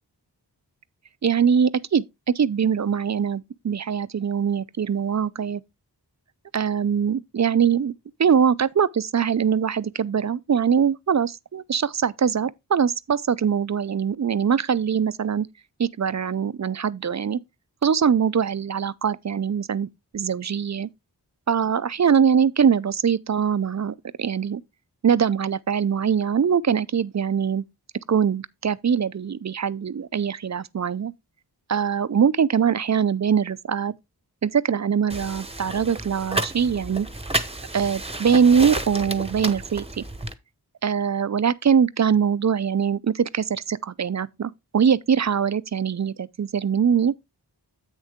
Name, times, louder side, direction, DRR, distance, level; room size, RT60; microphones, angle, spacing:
voice 1, 1.2-5.6 6.5-7.9 8.2-15.5 15.8-17.4 17.8-19.9 20.1-20.9 21.5-24.6 25.0-27.6 28.1-31.1 31.7-33.9 34.4-37.1 37.7-40.0 40.8-47.1, right 7 dB, 45° right, 0.4 m, -22 dB
sound 1, 35.1-40.3, right 1 dB, 15° right, 0.8 m, -31 dB
8.1 x 6.5 x 3.5 m
wide cardioid pair, 50°, 41 cm